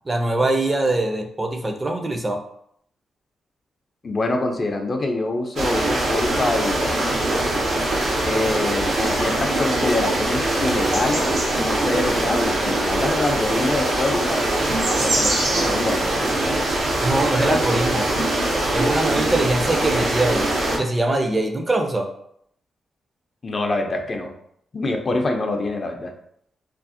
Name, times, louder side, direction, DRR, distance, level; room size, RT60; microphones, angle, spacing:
voice 1, 0.1-2.4 17.0-18.1 18.7-20.4 20.8-22.1, right 2 dB, 25° right, 3 dB, 0.4 m, -22 dB
voice 2, 4.0-7.2 8.2-14.5 15.0-16.3 23.4-24.3 24.7-26.1, left 2 dB, 45° left, 4 dB, 0.4 m, -25 dB
sound 1, 5.6-20.8, right 1 dB, 85° right, 0.6 m, -22 dB
2.4 x 2.0 x 2.5 m, 0.70 s
supercardioid pair, 55°, 0 cm